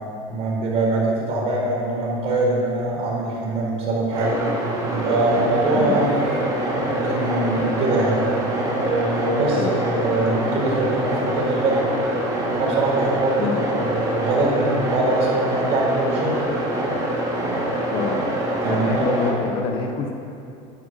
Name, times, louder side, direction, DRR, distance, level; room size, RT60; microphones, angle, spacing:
voice 1, 0.3-4.4 4.9-6.5 6.8-8.2 8.8-11.9 12.5-16.4 18.6-19.4, right 2 dB, 40° right, -3 dB, 4.7 m, -23 dB
sound 1, 4.1-19.3, right 1 dB, 20° right, 2.8 m, -25 dB
voice 2, 17.9-18.3 18.7-20.1, left 5 dB, 35° left, 3 dB, 1.2 m, -26 dB
12.0 x 10.5 x 9.8 m, 2.6 s
cardioid pair, 175°, 16 cm